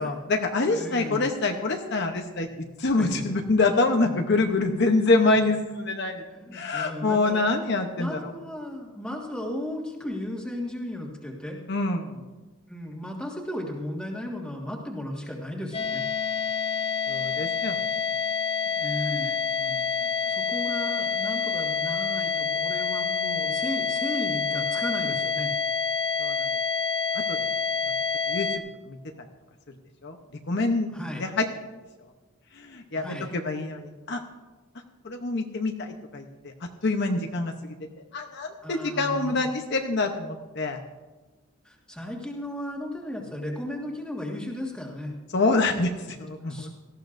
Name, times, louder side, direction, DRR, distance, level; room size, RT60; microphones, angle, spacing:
voice 1, 0.0-2.5 2.8-6.2 6.5-8.3 11.7-12.2 17.1-17.8 19.6-19.8 26.2-26.5 27.1-27.4 28.3-28.5 28.9-29.0 30.0-30.2 30.5-30.9 31.2-31.5 32.5-34.2 35.0-36.5 36.8-37.7 38.1-40.8 45.3-46.7, left 3 dB, 55° left, 4 dB, 0.8 m, -26 dB
voice 2, 0.7-1.2 2.9-3.4 4.0-4.1 6.3-7.5 8.0-11.6 12.7-16.0 18.7-19.4 20.3-25.5 27.8-28.0 30.9-31.3 33.0-33.3 38.6-39.5 41.6-45.1 46.5-46.7, left 1 dB, 5° left, -1 dB, 1.7 m, -35 dB
sound 1, 15.7-28.6, left 5 dB, 25° left, 0.5 m, -27 dB
18.0 x 13.5 x 2.6 m, 1.2 s
head